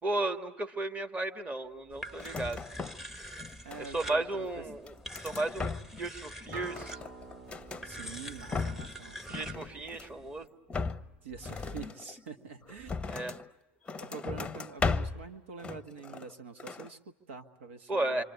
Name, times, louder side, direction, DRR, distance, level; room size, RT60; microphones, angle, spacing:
voice 1, 0.0-2.6 3.8-4.9 5.2-5.7 6.0-7.0 9.3-10.5 13.1-13.3 17.9-18.2, right 2 dB, 20° right, 5 dB, 2.0 m, -34 dB
sound 1, 1.9-10.5, equal, 5° right, 1.2 m, -46 dB
sound 2, 2.1-3.1 3.4-4.2 4.7-6.1 6.4-7.9 8.3-9.0 9.3-10.2 10.7-13.5 13.9-15.3 15.6-16.3 16.6-16.9, left 4 dB, 15° left, 0.9 m, -37 dB
voice 2, 3.6-4.6 7.8-9.5 11.2-12.9 14.0-18.2, right 5 dB, 75° right, 7 dB, 1.6 m, -46 dB
Acoustic guitar, 6.5-11.7, right 4 dB, 50° right, 5.3 m, -51 dB
27.0 x 26.0 x 8.3 m, 1.1 s
hypercardioid pair, 90°, 7 cm